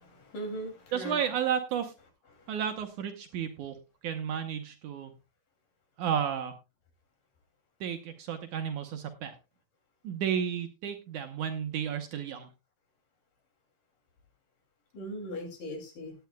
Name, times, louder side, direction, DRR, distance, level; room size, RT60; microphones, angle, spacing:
voice 1, 0.0-1.2 2.3-2.5 14.9-16.1, equal, 60° left, 3 dB, 4.2 m, -39 dB
voice 2, 0.9-1.9 2.5-3.8 4.0-5.1 6.0-6.5 7.8-9.3 10.0-12.5, right 8 dB, 70° right, 6 dB, 2.2 m, -32 dB
18.0 x 10.5 x 2.2 m, 0.27 s
omnidirectional pair, 4.2 m